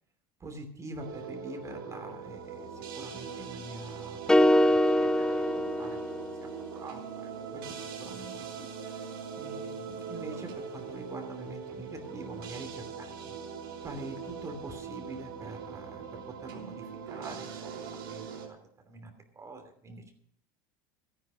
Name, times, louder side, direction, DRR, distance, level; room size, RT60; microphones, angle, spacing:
voice 1, 0.4-13.4 13.8-18.6 18.8-20.0, right 2 dB, 25° right, 5 dB, 2.9 m, -45 dB
sound 1, 1.0-18.5, right 6 dB, 80° right, 3.3 m, -41 dB
sound 2, 4.3-6.6, left 1 dB, 5° left, 0.7 m, -24 dB
13.0 x 10.5 x 6.2 m, 0.63 s
hypercardioid pair, 95°, 12 cm